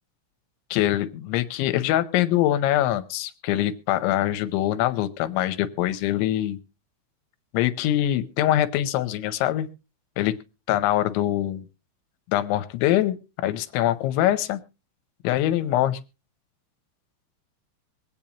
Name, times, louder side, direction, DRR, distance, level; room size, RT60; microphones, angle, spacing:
voice 1, 0.7-6.6 7.5-9.7 10.2-10.3 10.7-11.6 12.3-14.6 15.2-16.0, left 13 dB, 80° left, 11 dB, 3.1 m, -23 dB
23.0 x 8.6 x 2.9 m, 0.31 s
omnidirectional pair, 5.3 m